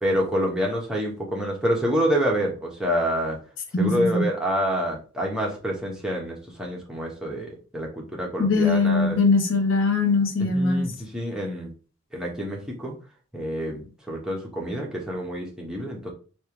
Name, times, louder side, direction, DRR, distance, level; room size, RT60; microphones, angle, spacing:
voice 1, 0.0-3.4 3.8-9.2 10.4-11.7 12.1-12.9 13.3-16.1, equal, 5° right, -3 dB, 1.1 m, -27 dB
voice 2, 3.7-4.2 8.4-10.8, left 3 dB, 80° left, 5 dB, 1.0 m, -21 dB
3.4 x 2.9 x 4.6 m, 0.37 s
head